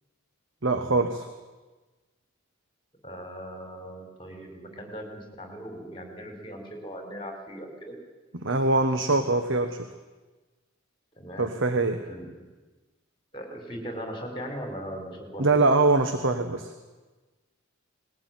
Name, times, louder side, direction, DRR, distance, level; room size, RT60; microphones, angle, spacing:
voice 1, 0.6-1.3 8.4-9.8 11.4-12.0 15.4-16.7, right 3 dB, 65° right, 7 dB, 1.3 m, -23 dB
voice 2, 3.0-8.0 11.2-11.5 12.0-12.5 13.3-15.6, equal, 25° left, 3 dB, 4.8 m, -39 dB
20.5 x 16.5 x 9.3 m, 1.2 s
head